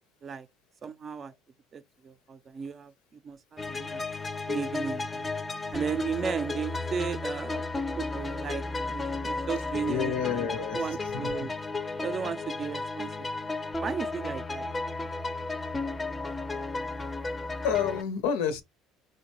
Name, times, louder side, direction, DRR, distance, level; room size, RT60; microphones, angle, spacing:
voice 1, 0.8-1.3 1.7-4.0 4.5-5.3 5.7-10.5 10.7-11.5 12.0-13.1 13.8-14.7, right 6 dB, 40° right, 0.4 m, -35 dB
sound 1, 3.6-18.0, left 3 dB, 20° left, 0.5 m, -33 dB
voice 2, 9.9-10.9 11.1-11.5 17.6-18.6, left 7 dB, 85° left, 0.6 m, -29 dB
3.9 x 2.2 x 2.9 m
supercardioid pair, 80°, 0 cm